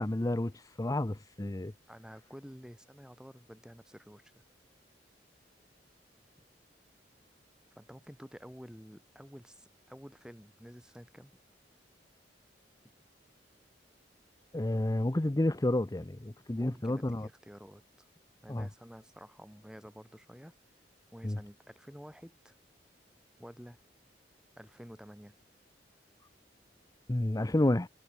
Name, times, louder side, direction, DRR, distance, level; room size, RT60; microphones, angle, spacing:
voice 1, 0.0-1.7 14.5-17.3 18.5-18.7 21.2-21.4 27.1-27.9, left 1 dB, 20° left, 0.7 m, -30 dB
voice 2, 1.9-4.5 7.8-11.3 16.5-18.1 18.4-20.6 21.1-22.6 23.4-23.8 24.6-25.4, equal, 5° right, 3.5 m, -50 dB
head